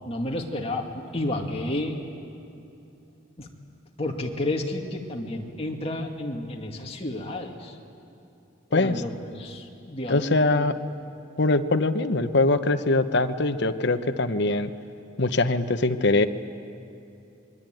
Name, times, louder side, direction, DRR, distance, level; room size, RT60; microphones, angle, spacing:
voice 1, 0.1-2.0 3.4-3.5 4.0-7.8 8.7-10.7, left 1 dB, 30° left, 1 dB, 2.2 m, -31 dB
voice 2, 8.7-9.0 10.1-10.7 11.4-14.7 15.2-16.3, left 2 dB, 55° left, 8 dB, 1.0 m, -22 dB
25.0 x 22.5 x 9.2 m, 2.9 s
head